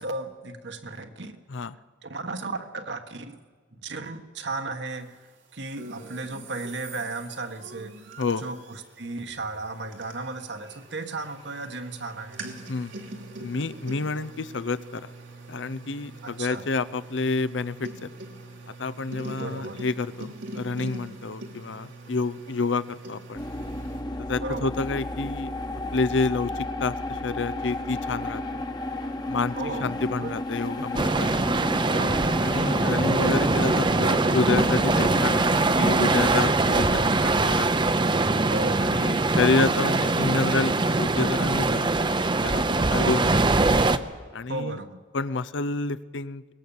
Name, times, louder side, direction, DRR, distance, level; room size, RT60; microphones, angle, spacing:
voice 1, 0.0-1.3 2.0-3.4 3.8-5.2 5.5-7.9 8.4-12.4 16.2-16.6 19.4-19.8 24.4-24.7 29.5-30.3 31.9-32.3 36.7-37.0 38.4-38.9 43.0-43.5 44.5-45.0, right 3 dB, 70° right, 7 dB, 1.5 m, -35 dB
sound 1, 5.7-24.0, right 2 dB, 85° right, 2.7 m, -43 dB
voice 2, 13.4-15.1 15.5-18.1 18.8-23.4 24.3-25.5 25.9-28.6 29.3-29.6 29.8-31.6 32.4-38.0 38.8-42.0 42.4-43.4 44.3-44.8 45.1-46.5, left 3 dB, 80° left, 14 dB, 0.7 m, -29 dB
sound 2, 23.3-36.5, left 1 dB, 25° left, 1.1 m, -33 dB
sound 3, 30.9-44.0, right 3 dB, 25° right, 0.7 m, -22 dB
23.0 x 19.0 x 7.2 m, 1.5 s
head